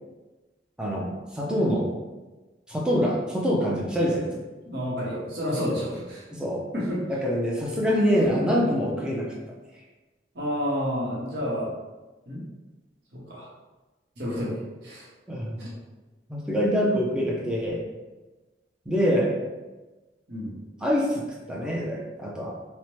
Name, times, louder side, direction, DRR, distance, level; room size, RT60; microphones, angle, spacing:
voice 1, 1.3-1.8 2.7-4.4 6.3-6.7 7.1-9.3 15.3-15.6 16.3-17.8 18.9-19.3 20.8-21.2 21.5-22.5, equal, 5° right, -3 dB, 0.4 m, -25 dB
voice 2, 4.6-6.2 6.7-7.0 10.3-11.7 12.3-12.4 13.1-13.5 14.2-15.1 15.6-15.7 20.3-20.6, equal, 65° right, -5 dB, 0.9 m, -30 dB
2.8 x 2.0 x 3.0 m, 1.2 s
head